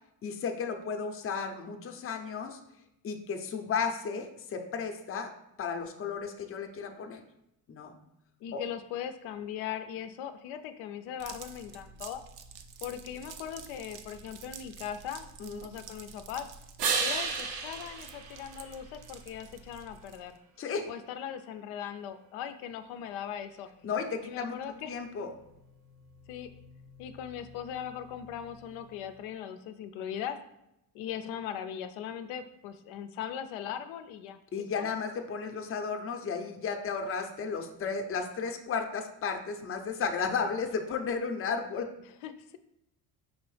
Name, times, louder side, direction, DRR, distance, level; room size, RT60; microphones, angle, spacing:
voice 1, 0.2-2.6 3.0-5.3 5.6-7.2 7.7-7.9 8.5-8.6 15.4-15.7 20.6-20.9 23.8-24.6 24.9-25.3 34.5-41.9, left 5 dB, 30° left, 5 dB, 0.6 m, -34 dB
voice 2, 8.4-12.2 12.8-15.3 15.6-16.5 17.0-20.4 20.9-23.7 24.2-24.9 26.3-26.5 27.0-30.4 30.9-34.9 42.0-42.6, left 9 dB, 75° left, 10 dB, 0.5 m, -39 dB
sound 1, 11.2-20.4, right 5 dB, 40° right, 0.5 m, -49 dB
sound 2, 16.8-19.3 25.1-29.1, right 5 dB, 85° right, 0.9 m, -37 dB
5.4 x 3.0 x 3.2 m, 0.85 s
supercardioid pair, 85°, 49 cm